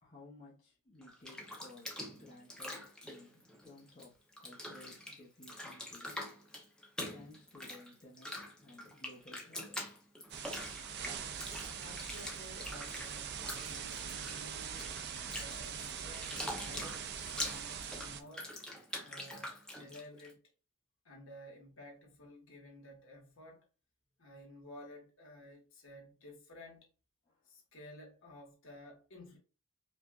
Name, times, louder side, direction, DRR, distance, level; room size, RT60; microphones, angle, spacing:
voice 1, 0.0-6.2 7.1-8.3 8.6-9.8 27.3-27.4, left 2 dB, 35° left, 1.0 m, -57 dB
Bathtub (filling or washing), 1.0-4.1 4.3-20.3, left 1 dB, 5° left, 0.6 m, -45 dB
sound 1, 10.3-18.2, right 7 dB, 50° right, 0.4 m, -42 dB
voice 2, 11.8-15.0 15.3-18.5 19.0-20.4 21.0-23.6 24.2-26.9 27.4-29.4, left 1 dB, 60° left, 1.6 m, -53 dB
5.0 x 2.4 x 2.4 m
head